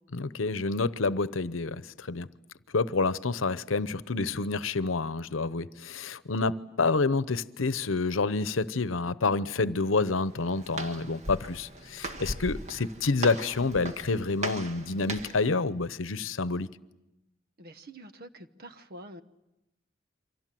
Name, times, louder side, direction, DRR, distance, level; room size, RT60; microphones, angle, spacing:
voice 1, 0.1-2.3 2.7-16.7, left 3 dB, 85° left, 0.9 m, -28 dB
Walk footsteps, 10.1-15.5, right 2 dB, 35° right, 1.8 m, -38 dB
voice 2, 17.6-19.2, right 1 dB, 50° right, 1.2 m, -46 dB
29.0 x 24.5 x 7.7 m
head